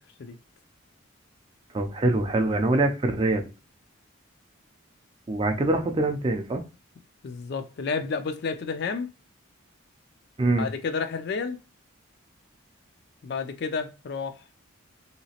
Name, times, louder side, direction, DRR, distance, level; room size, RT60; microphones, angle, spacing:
voice 1, 1.7-3.5 5.3-6.6 10.4-10.7, right 2 dB, 25° right, 0.4 m, -24 dB
voice 2, 7.2-9.1 10.6-11.6 13.2-14.3, left 5 dB, 50° left, 0.3 m, -30 dB
3.1 x 2.9 x 2.8 m
head